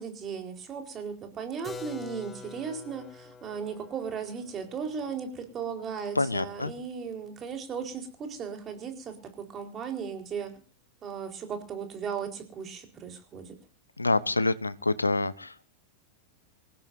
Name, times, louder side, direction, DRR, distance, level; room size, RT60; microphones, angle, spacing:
voice 1, 0.0-10.6 11.0-13.5, right 6 dB, 25° right, 5 dB, 4.4 m, -36 dB
Keyboard (musical), 1.6-7.3, left 4 dB, 20° left, 2.1 m, -47 dB
voice 2, 6.2-6.7 14.0-15.7, left 2 dB, 80° left, 17 dB, 1.0 m, -27 dB
27.0 x 16.5 x 2.7 m, 0.37 s
figure-of-eight pair, 90°, 0 cm